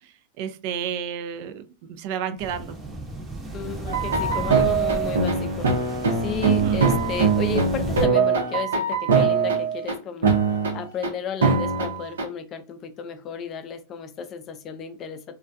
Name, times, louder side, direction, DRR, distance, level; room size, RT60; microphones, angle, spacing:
voice 1, 0.0-1.6 2.0-2.8 6.4-6.8, right 8 dB, 55° right, 0.4 m, -31 dB
sound 1, 2.4-8.1, right 1 dB, 15° right, 0.7 m, -33 dB
voice 2, 3.5-5.7 6.2-10.4 10.7-15.4, left 6 dB, 35° left, 0.4 m, -33 dB
sound 2, 3.9-9.9 10.2-11.1 11.4-12.2, right 5 dB, 85° right, 0.7 m, -22 dB
2.2 x 2.2 x 2.6 m
hypercardioid pair, 115°, 0 cm